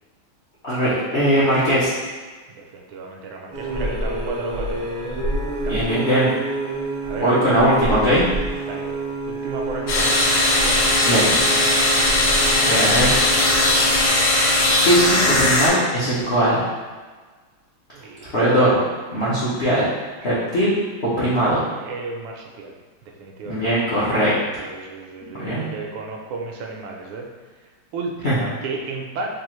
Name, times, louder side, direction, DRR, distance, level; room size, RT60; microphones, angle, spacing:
voice 1, 0.6-1.9 5.7-6.3 7.1-8.3 11.0-11.3 12.6-13.3 14.8-16.7 18.3-18.8 19.1-19.9 20.2-20.8 21.0-21.6 23.5-24.6 25.4-25.7 28.2-28.3, equal, 80° left, -10 dB, 0.5 m, -20 dB
voice 2, 2.5-5.0 5.6-6.4 7.1-7.4 8.7-8.9 9.3-10.3 10.6-11.0 17.9-18.4 21.8-22.7 23.0-23.7 24.6-27.3 27.9-29.3, right 3 dB, 80° right, 1 dB, 1.3 m, -33 dB
sound 1, 3.5-14.1, right 2 dB, 35° right, 0.5 m, -28 dB
sound 2, 9.9-15.7, left 2 dB, 60° left, 1.1 m, -18 dB
4.7 x 2.4 x 3.0 m, 1.4 s
omnidirectional pair, 2.4 m